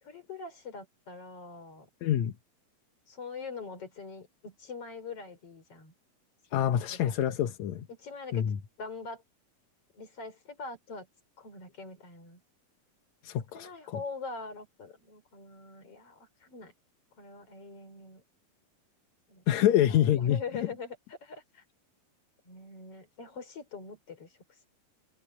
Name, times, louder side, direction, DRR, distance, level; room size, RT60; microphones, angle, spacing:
voice 1, 0.0-1.9 3.1-5.9 6.5-7.2 7.9-8.5 8.8-9.2 9.9-11.1 11.4-12.4 13.5-16.7 17.2-18.2 19.3-21.6 22.5-24.7, left 4 dB, 40° left, 5.4 m, -43 dB
voice 2, 2.0-2.3 6.5-7.9 8.3-8.6 13.2-14.0 19.5-20.7, left 11 dB, 65° left, 2.0 m, -26 dB
omnidirectional pair, 4.0 m